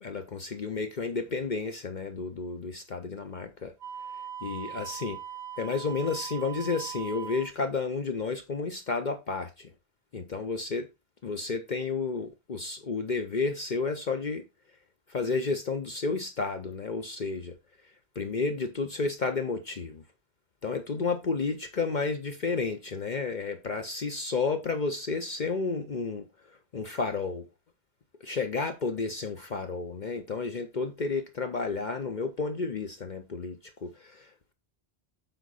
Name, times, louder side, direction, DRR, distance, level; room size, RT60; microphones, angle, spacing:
voice 1, 0.0-3.7 4.4-5.2 5.6-9.7 10.1-10.9 11.2-14.4 15.1-17.6 18.2-20.0 20.6-27.5 28.2-34.3, left 4 dB, 50° left, 0.9 m, -31 dB
Wind instrument woodwind instrument, 3.8-7.5, right 9 dB, 65° right, 2.5 m, -40 dB
7.8 x 5.0 x 4.1 m
omnidirectional pair, 1.1 m